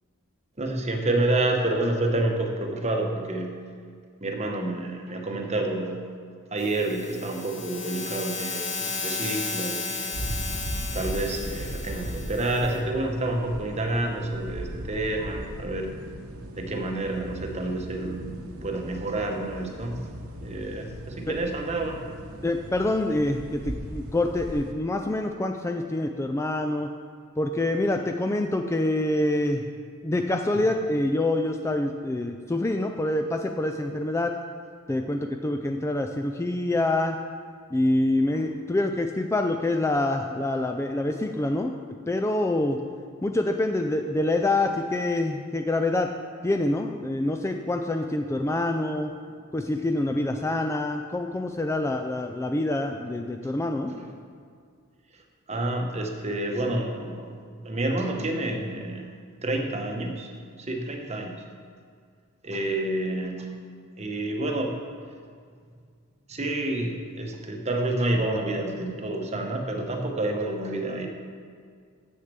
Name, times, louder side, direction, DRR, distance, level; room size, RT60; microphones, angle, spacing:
voice 1, 0.6-3.6 4.2-6.0 6.5-10.1 10.9-15.9 16.6-18.3 18.6-20.1 20.4-22.0 53.9-54.1 55.1-55.2 55.5-57.4 57.6-59.1 59.4-60.3 60.6-61.4 62.4-63.5 64.0-64.8 66.3-71.1, right 2 dB, 30° right, 3 dB, 0.9 m, -29 dB
sound 1, 6.6-12.8, left 4 dB, 35° left, 1.4 m, -34 dB
sound 2, 10.1-24.7, right 1 dB, 80° right, 0.9 m, -38 dB
voice 2, 22.4-26.9 27.4-29.7 30.0-34.3 34.9-37.2 37.7-41.8 42.1-42.8 43.2-46.1 46.4-49.1 49.5-53.9, left 2 dB, 15° left, 4 dB, 0.3 m, -26 dB
7.2 x 6.6 x 6.7 m, 2.1 s
head